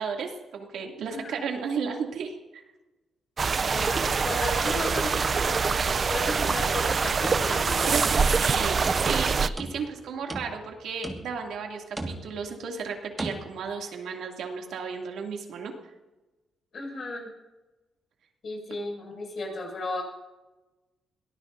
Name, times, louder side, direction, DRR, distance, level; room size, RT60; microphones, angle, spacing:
voice 1, 0.0-2.6 7.8-15.7, right 6 dB, 80° right, 1 dB, 2.6 m, -34 dB
sound 1, 3.4-9.5, right 5 dB, 35° right, 0.5 m, -25 dB
voice 2, 3.6-8.0 16.7-17.3 18.4-20.0, left 2 dB, 45° left, -1 dB, 6.5 m, -35 dB
sound 2, 6.5-7.7 8.0-8.5 8.8-10.0 10.3-10.8 11.0-11.5 12.0-12.5 13.2-13.4, right 2 dB, 15° right, 1.8 m, -37 dB
22.5 x 18.0 x 2.7 m, 1.1 s
cardioid pair, 135°, 0 cm